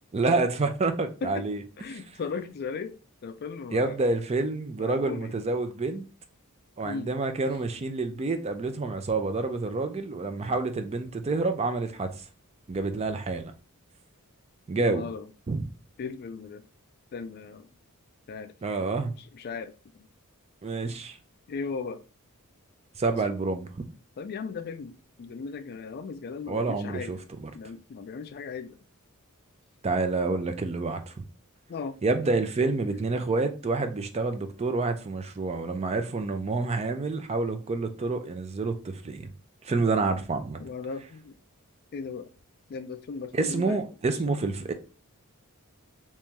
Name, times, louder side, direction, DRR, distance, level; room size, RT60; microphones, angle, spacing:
voice 1, 0.1-1.6 3.7-6.1 6.8-12.1 12.7-13.5 14.7-15.1 15.5-15.6 18.6-19.1 20.6-21.2 23.0-23.8 26.5-27.5 29.8-31.2 32.0-39.3 39.6-40.6 43.3-44.7, right 3 dB, 30° right, 0.4 m, -28 dB
voice 2, 1.8-2.9 3.2-4.0 4.8-5.3 6.8-7.1 14.8-15.3 16.0-16.6 17.1-17.7 18.3-18.5 19.2-20.1 21.5-22.0 23.1-23.2 24.2-27.2 27.5-28.8 31.7-32.0 32.9-33.0 40.6-41.3 41.9-42.3 42.7-43.9 44.3-44.4, left 5 dB, 45° left, 0.3 m, -37 dB
3.0 x 2.9 x 3.5 m
head